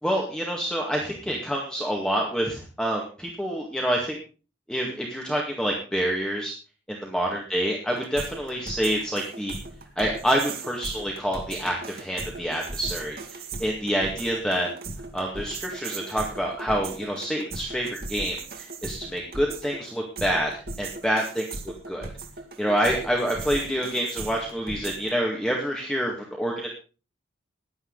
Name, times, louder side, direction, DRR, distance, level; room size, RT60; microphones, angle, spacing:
voice 1, 0.0-4.2 4.7-6.5 6.9-9.5 10.0-14.7 15.1-21.4 21.9-22.1 22.6-26.7, equal, 5° left, -1 dB, 1.9 m, -27 dB
sound 1, 7.9-25.1, right 3 dB, 55° right, 2.1 m, -38 dB
16.0 x 11.0 x 4.0 m, 0.36 s
head